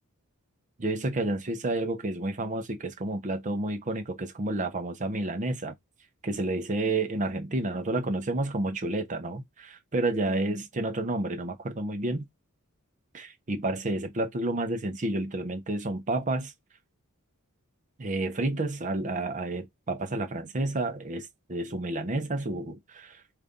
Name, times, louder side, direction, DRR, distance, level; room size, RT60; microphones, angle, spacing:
voice 1, 0.8-5.7 6.2-12.3 13.1-16.5 18.0-23.2, right 2 dB, 35° right, 0.7 m, -30 dB
3.9 x 2.5 x 3.5 m
head